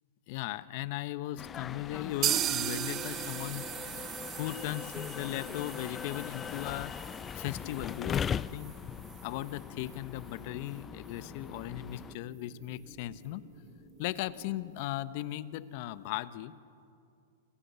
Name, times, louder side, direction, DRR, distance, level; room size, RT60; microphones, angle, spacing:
voice 1, 0.3-3.7 4.4-6.9 7.3-8.8 9.2-13.4 14.0-16.5, left 15 dB, 55° left, 14 dB, 1.1 m, -37 dB
sound 1, 1.4-12.2, left 8 dB, 25° left, 0.5 m, -40 dB
sound 2, 2.2-10.0 10.3-10.4 10.7-10.8 11.2-11.3, right 11 dB, 35° right, 1.7 m, -37 dB
sound 3, 8.3-15.6, right 2 dB, 10° right, 5.8 m, -56 dB
28.5 x 25.5 x 7.0 m, 2.5 s
hypercardioid pair, 115°, 0 cm